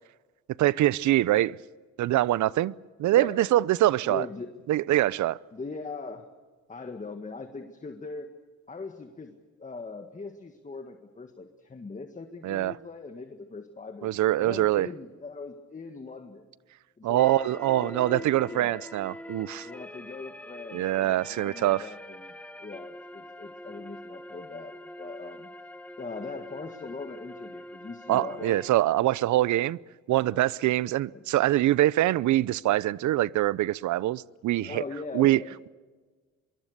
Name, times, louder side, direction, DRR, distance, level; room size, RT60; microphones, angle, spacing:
voice 1, 0.6-1.6 2.0-2.7 3.0-4.3 4.7-5.4 12.4-12.7 14.0-14.9 17.0-19.7 20.7-21.9 28.1-29.8 30.1-34.8 35.1-35.4, right 15 dB, 75° right, 0.6 m, -24 dB
voice 2, 3.1-3.5 4.0-4.5 5.5-6.3 6.7-8.3 8.7-14.1 14.4-16.4 17.0-17.5 17.8-18.9 19.6-25.7 26.0-28.6 31.1-31.3 34.6-35.5, left 4 dB, 25° left, 1.8 m, -40 dB
sound 1, 17.2-28.7, left 1 dB, 5° left, 1.4 m, -44 dB
25.0 x 23.5 x 6.7 m
cardioid pair, 90°, 30 cm